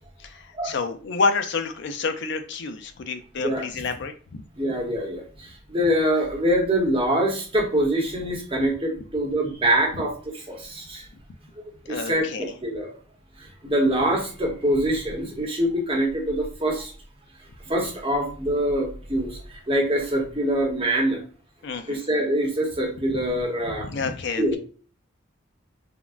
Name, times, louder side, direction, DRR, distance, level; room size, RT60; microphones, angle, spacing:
voice 1, 0.2-4.4 11.9-12.4 21.6-22.0 23.1-23.2 23.8-24.6, left 4 dB, 55° left, 7 dB, 0.4 m, -29 dB
voice 2, 4.6-11.0 11.9-13.0 13.4-16.9 17.6-21.2 21.9-23.9 24.4-24.6, right 1 dB, 25° right, -1 dB, 0.8 m, -24 dB
3.5 x 2.0 x 2.3 m, 0.39 s
head